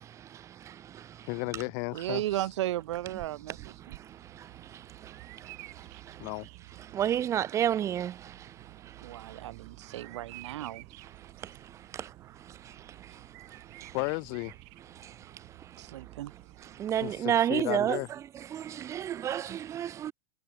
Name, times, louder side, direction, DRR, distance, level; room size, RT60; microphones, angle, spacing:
voice 1, 1.3-2.4 6.2-6.5 13.9-14.5 17.0-18.1, left 40 dB or more, 40° left, 0.4 m, -34 dB
voice 2, 1.9-4.0 9.0-10.8 15.8-16.3, right 14 dB, 75° right, 0.7 m, -35 dB
Bird vocalization bird call bird song, 2.0-17.2, right 40 dB or more, 45° right, 1.9 m, -52 dB
voice 3, 7.0-8.1 16.8-18.0 18.9-19.4 19.7-20.1, right 10 dB, 20° right, 0.7 m, -28 dB
supercardioid pair, 150°, 15 cm